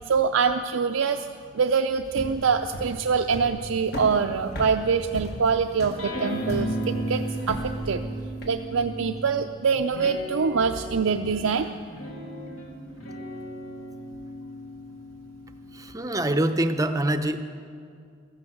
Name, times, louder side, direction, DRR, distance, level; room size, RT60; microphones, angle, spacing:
voice 1, 0.1-1.3 1.5-8.0 8.5-11.7, right 5 dB, 90° right, 5 dB, 0.5 m, -24 dB
sound 1, 2.0-8.6, equal, 50° left, 1.7 m, -37 dB
sound 2, 6.0-9.4 9.9-16.7, right 1 dB, 90° left, 2.7 m, -35 dB
voice 2, 15.7-17.4, right 1 dB, 15° right, 9 dB, 0.6 m, -25 dB
14.0 x 12.0 x 7.8 m, 2.3 s
head